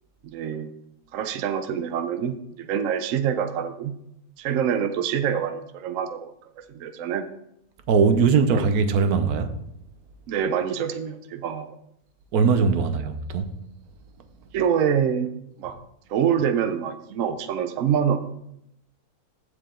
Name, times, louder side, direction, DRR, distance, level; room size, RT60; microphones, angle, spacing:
voice 1, 0.2-0.7 1.1-4.0 4.4-6.3 6.7-7.2 8.5-8.7 10.3-11.7 14.5-15.3 15.6-15.8 16.1-18.2, right 8 dB, 65° right, 1.0 m, -25 dB
voice 2, 7.9-9.5 12.3-13.5, right 5 dB, 80° right, 1.3 m, -20 dB
14.5 x 4.9 x 3.7 m
omnidirectional pair, 1.6 m